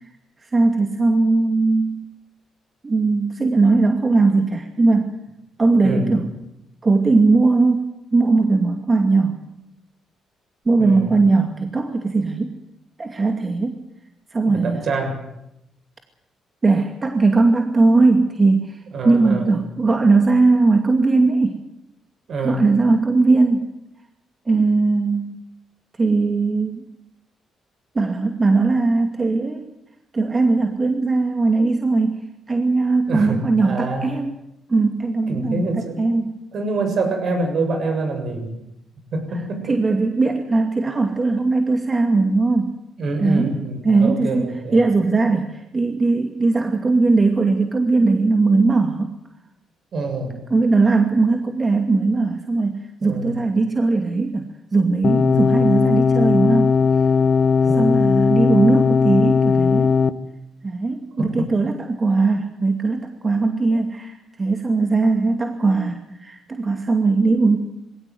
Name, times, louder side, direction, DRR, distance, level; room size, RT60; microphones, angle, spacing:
voice 1, 0.5-2.0 2.8-5.1 5.6-6.3 6.8-9.4 10.7-12.5 13.0-13.8 14.3-14.9 16.6-18.8 19.0-21.6 22.4-23.6 24.5-25.4 26.0-26.8 27.9-29.6 30.1-34.4 34.7-35.7 36.0-36.4 39.7-42.7 43.2-43.6 43.8-49.1 50.5-56.8 57.8-59.9 60.6-67.6, right 3 dB, 30° right, 5 dB, 2.4 m, -19 dB
voice 2, 5.8-6.2 10.8-11.2 14.4-15.2 18.9-19.5 22.3-22.7 33.1-34.1 35.3-36.0 36.5-38.6 39.1-40.0 43.0-44.8 49.9-50.4 53.0-53.3 55.2-55.5 57.7-58.0 61.2-61.5, right 2 dB, 60° right, 6 dB, 7.1 m, -26 dB
sound 1, 55.0-60.1, left 5 dB, 50° left, 1.3 m, -17 dB
22.0 x 17.0 x 9.5 m, 0.84 s
cardioid pair, 90°, 0 cm